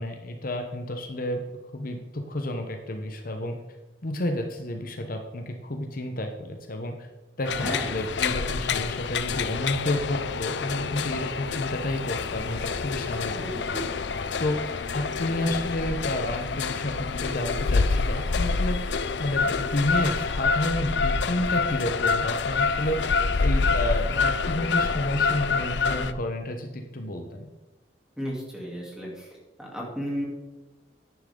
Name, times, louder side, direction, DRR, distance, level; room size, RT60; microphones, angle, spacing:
voice 1, 0.0-1.4 1.7-3.6 4.0-7.1 7.4-13.8 14.4-14.6 14.9-27.5, left 1 dB, 50° left, 5 dB, 1.0 m, -30 dB
sound 1, 7.4-26.1, left 4 dB, 75° left, 0.6 m, -27 dB
voice 2, 7.6-7.9 13.4-13.8 28.2-29.3 29.6-30.2, equal, 5° right, -3 dB, 3.1 m, -33 dB
10.5 x 9.8 x 3.8 m, 1.1 s
head